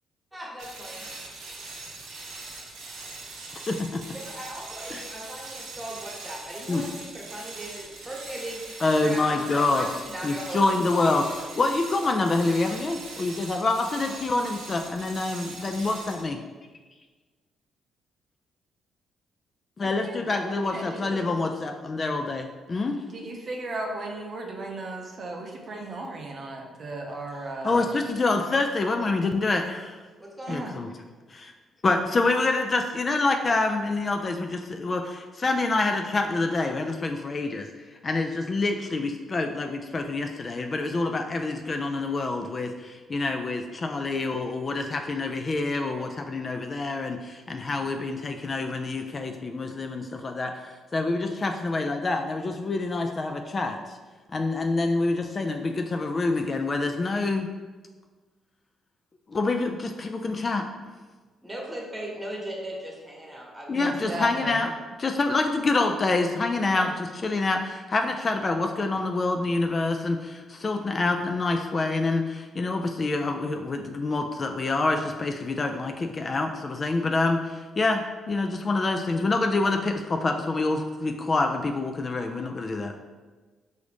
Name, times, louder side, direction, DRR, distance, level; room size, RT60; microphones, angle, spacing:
voice 1, 0.3-1.0 4.1-10.8 30.2-30.6 61.4-63.8 64.1-64.2 66.7-66.9, right 1 dB, 10° right, -2 dB, 1.1 m, -38 dB
sound 1, 0.6-16.3, right 3 dB, 85° right, 0.8 m, -41 dB
voice 2, 3.7-4.0 4.9-5.0 6.7-6.8 8.8-9.8 10.2-16.4 19.8-23.0 27.6-30.0 30.5-30.9 31.3-31.5 31.8-37.7 38.0-54.0 54.3-57.5 59.3-60.6 63.7-64.7 65.0-66.9 67.2-82.9, left 3 dB, 35° left, 4 dB, 0.3 m, -26 dB
voice 3, 20.0-21.3 23.1-27.8 30.5-30.7 63.7-64.6, right 2 dB, 45° right, 0 dB, 0.6 m, -36 dB
4.6 x 2.7 x 3.3 m, 1.3 s
cardioid pair, 90°, 0 cm